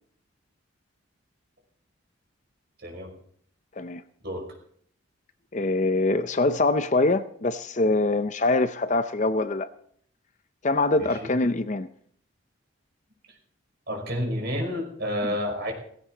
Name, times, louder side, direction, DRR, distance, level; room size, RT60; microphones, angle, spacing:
voice 1, 5.5-9.7 10.6-11.9 15.2-15.3, left 2 dB, 35° left, 0.5 m, -24 dB
voice 2, 11.0-11.3 13.9-15.7, equal, 50° right, 5.5 m, -30 dB
17.0 x 16.5 x 3.9 m
head